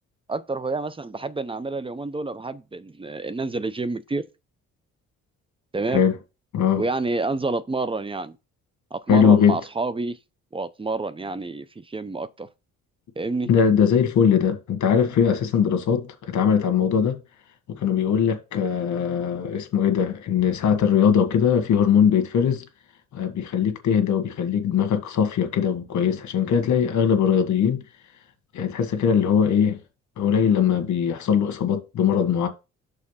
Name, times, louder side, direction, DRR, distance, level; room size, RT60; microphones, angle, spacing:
voice 1, 0.3-4.3 5.7-6.0 6.8-8.4 8.9-10.2 10.5-12.5 13.2-13.5, right 3 dB, 20° right, 0.6 m, -28 dB
voice 2, 9.1-9.6 13.5-17.2 17.7-22.6 23.1-27.8 28.5-29.8 30.2-32.5, left 7 dB, 70° left, 1.5 m, -21 dB
6.6 x 3.5 x 5.6 m
cardioid pair, 90°, 30 cm